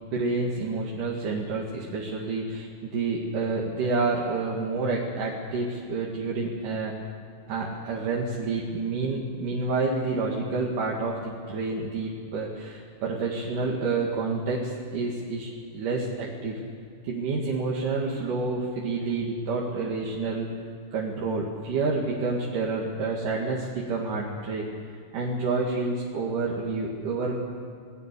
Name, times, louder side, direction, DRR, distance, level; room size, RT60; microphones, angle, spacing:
voice 1, 0.1-6.9 7.5-16.6 17.0-20.5 20.9-24.7 25.1-27.3, right 3 dB, 70° right, -3 dB, 3.6 m, -29 dB
29.0 x 19.0 x 6.9 m, 2.4 s
omnidirectional pair, 3.9 m